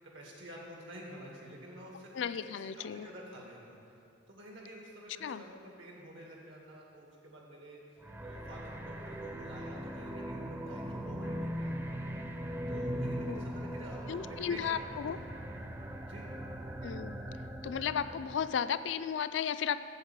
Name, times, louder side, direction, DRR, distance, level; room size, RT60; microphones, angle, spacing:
voice 1, 0.1-2.4 2.8-4.0 4.3-11.9 12.7-15.3 16.0-16.3, right 1 dB, 80° right, -2 dB, 2.2 m, -49 dB
voice 2, 2.1-3.1 5.2-5.4 13.3-13.4 14.1-15.2 16.8-17.1 17.6-19.8, left 8 dB, 70° left, 12 dB, 0.3 m, -34 dB
sound 1, 8.0-18.6, equal, 10° right, 0.5 m, -40 dB
8.0 x 7.6 x 7.3 m, 2.6 s
head